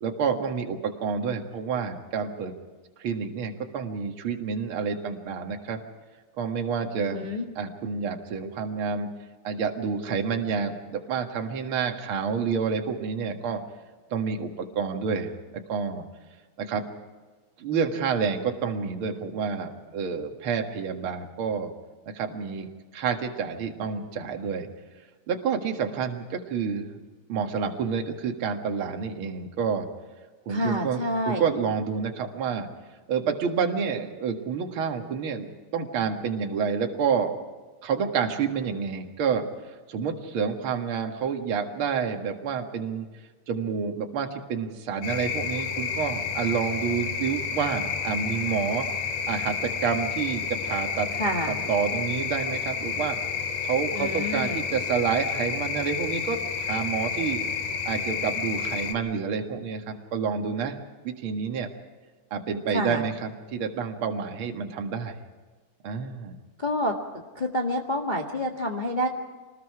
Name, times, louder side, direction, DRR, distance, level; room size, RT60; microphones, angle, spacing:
voice 1, 0.0-2.5 3.0-5.8 6.4-7.3 7.6-9.1 9.4-13.6 14.1-15.3 15.7-16.0 16.6-16.8 17.6-21.7 22.1-22.7 22.9-24.7 25.3-27.0 27.3-29.9 30.5-32.7 33.1-37.3 37.8-43.1 43.5-48.9 49.3-51.1 51.5-53.2 53.6-57.4 57.9-60.8 61.0-61.7 62.3-65.2 65.8-66.4, right 6 dB, 50° right, 3 dB, 2.3 m, -29 dB
voice 2, 7.0-7.5 30.5-31.4 51.2-51.6 53.9-54.6 62.7-63.0 66.6-66.9 67.3-69.1, equal, 25° left, 0 dB, 1.1 m, -28 dB
sound 1, 45.0-59.0, left 6 dB, 85° left, 3.2 m, -30 dB
26.5 x 20.0 x 4.9 m, 1.4 s
omnidirectional pair, 3.5 m